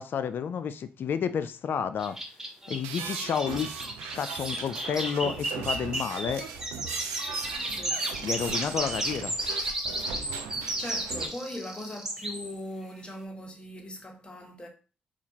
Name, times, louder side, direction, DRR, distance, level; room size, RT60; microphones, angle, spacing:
voice 1, 0.0-2.2 2.7-3.7 4.1-6.4 8.2-9.3, left 7 dB, 55° left, 0.3 m, -30 dB
sound 1, 2.0-12.5, right 1 dB, 10° right, 0.9 m, -33 dB
taken fast, 2.8-11.3, right 7 dB, 85° right, 0.4 m, -39 dB
voice 2, 7.7-8.1 10.7-14.7, left 1 dB, 25° left, 1.0 m, -40 dB
4.2 x 2.4 x 2.8 m
supercardioid pair, 50°, 4 cm